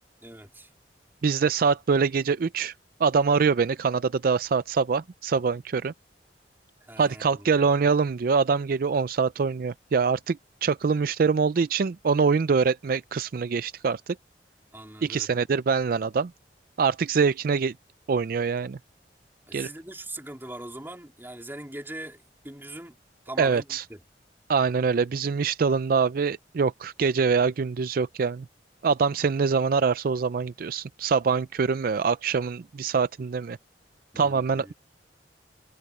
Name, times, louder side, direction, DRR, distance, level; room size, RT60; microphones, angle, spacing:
voice 1, 0.2-0.7 6.8-7.7 14.7-15.5 19.5-23.0 23.3-24.0 34.1-34.7, right 1 dB, 15° right, 4.0 m, -41 dB
voice 2, 1.2-2.7 3.0-5.9 7.0-14.2 15.0-16.3 16.8-17.7 18.1-18.8 19.5-19.7 23.4-23.8 24.5-28.5 28.8-33.6 34.2-34.7, right 5 dB, 55° right, 0.4 m, -24 dB
head